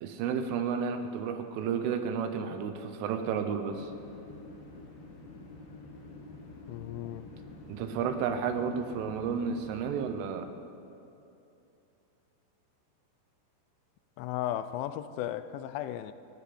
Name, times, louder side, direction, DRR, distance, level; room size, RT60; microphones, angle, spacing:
voice 1, 0.0-3.9 7.7-10.5, right 6 dB, 85° right, 3.4 m, -32 dB
sound 1, 3.7-9.9, left 3 dB, 65° left, 3.4 m, -48 dB
voice 2, 6.7-7.3 14.2-16.1, left 12 dB, 85° left, 3.0 m, -35 dB
29.0 x 10.0 x 4.3 m
omnidirectional pair, 5.6 m